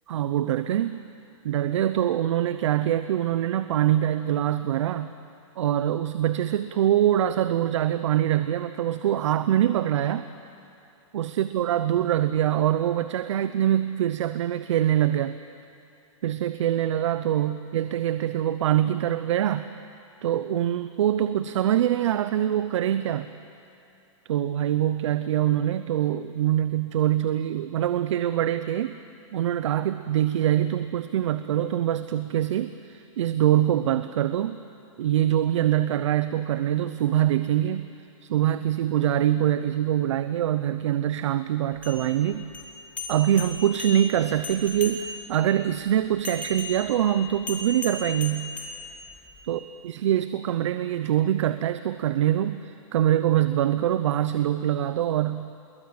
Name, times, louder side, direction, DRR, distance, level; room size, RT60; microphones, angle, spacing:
voice 1, 0.1-1.0 1.4-5.1 5.6-10.3 11.1-15.4 16.2-19.7 20.2-23.3 24.3-29.0 29.3-34.6 35.0-37.9 38.2-42.5 43.1-48.5 49.5-55.5, right 11 dB, 65° right, 12 dB, 0.8 m, -24 dB
sound 1, 41.7-45.4 46.2-49.4, left 3 dB, 10° left, 1.9 m, -37 dB
23.5 x 22.5 x 8.9 m, 2.7 s
hypercardioid pair, 150°, 17 cm